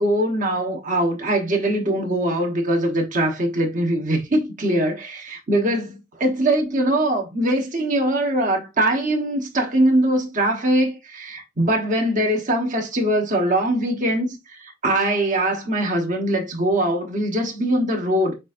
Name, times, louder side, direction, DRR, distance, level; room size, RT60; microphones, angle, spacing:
voice 1, 0.0-5.9 6.2-18.3, right 1 dB, 40° right, 1.0 m, -22 dB
7.0 x 2.5 x 2.5 m
head